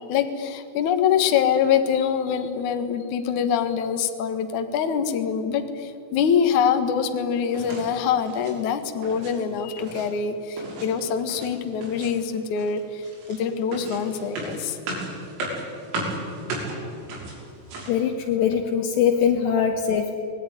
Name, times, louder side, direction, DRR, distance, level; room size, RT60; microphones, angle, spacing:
voice 1, 0.1-14.8, left 7 dB, 90° left, 7 dB, 1.7 m, -24 dB
sound 1, 7.5-7.9 8.2-8.6 8.9-9.3 9.6-10.1 10.6-11.5 11.8-12.3 12.6-18.0, right 1 dB, 85° right, 8.8 m, -34 dB
voice 2, 17.9-20.1, left 8 dB, 75° left, 2 dB, 2.8 m, -22 dB
26.0 x 19.5 x 9.9 m, 2.4 s
omnidirectional pair, 6.0 m